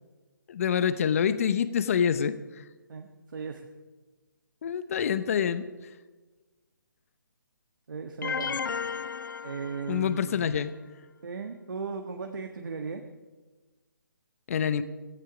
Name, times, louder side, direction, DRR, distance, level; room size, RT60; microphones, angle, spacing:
voice 1, 0.5-2.3 4.6-5.6 9.9-10.7 14.5-14.8, left 8 dB, 40° left, 14 dB, 0.9 m, -26 dB
voice 2, 2.9-3.6 7.9-8.6 9.4-10.6 11.2-13.0, right 5 dB, 65° right, 4 dB, 1.4 m, -37 dB
sound 1, 8.2-10.3, left 6 dB, 65° left, 0.6 m, -34 dB
16.0 x 15.5 x 5.1 m, 1.3 s
figure-of-eight pair, 150°, 11 cm